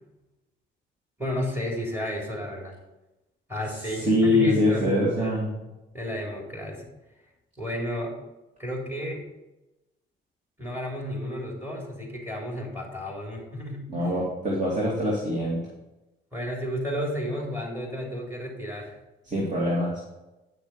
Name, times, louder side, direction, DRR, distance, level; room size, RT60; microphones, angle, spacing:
voice 1, 1.2-2.8 3.5-5.4 5.9-6.9 7.6-8.1 8.6-9.2 10.6-13.9 16.3-19.0, equal, 10° right, -1 dB, 3.6 m, -32 dB
voice 2, 3.9-5.5 13.9-15.6 19.3-20.0, left 1 dB, 40° right, -4 dB, 2.5 m, -24 dB
9.9 x 6.2 x 4.9 m, 1.0 s
cardioid pair, 90°, 20 cm